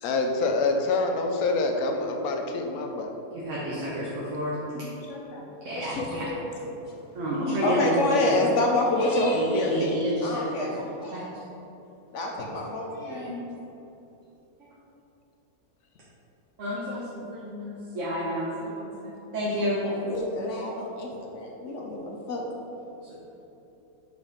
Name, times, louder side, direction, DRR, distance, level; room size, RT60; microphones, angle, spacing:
voice 1, 0.0-3.1, left 3 dB, 85° left, 3 dB, 1.1 m, -26 dB
voice 2, 3.3-4.8 5.6-6.3 7.1-8.3 9.3-10.8 11.1-11.2 13.1-13.4 16.6-19.8 23.0-23.2, equal, 60° right, -7 dB, 1.3 m, -30 dB
voice 3, 5.1-5.4 5.7-6.8 7.4-10.7 11.0-11.2 12.1-13.3 19.8-22.4, left 1 dB, 60° left, -1 dB, 1.0 m, -28 dB
5.2 x 4.2 x 5.1 m, 3.0 s
omnidirectional pair, 1.5 m